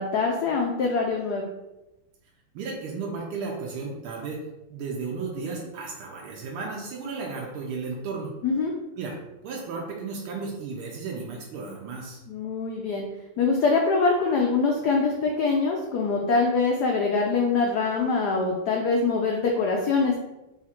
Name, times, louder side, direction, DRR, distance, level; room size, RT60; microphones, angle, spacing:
voice 1, 0.0-1.5 8.4-8.7 12.3-13.0 13.4-20.1, left 4 dB, 80° left, 1 dB, 0.9 m, -24 dB
voice 2, 2.5-4.4 4.7-8.3 9.0-9.2 9.4-12.2, right 4 dB, 85° right, -1 dB, 1.5 m, -34 dB
4.3 x 2.4 x 4.2 m, 0.97 s
omnidirectional pair, 2.3 m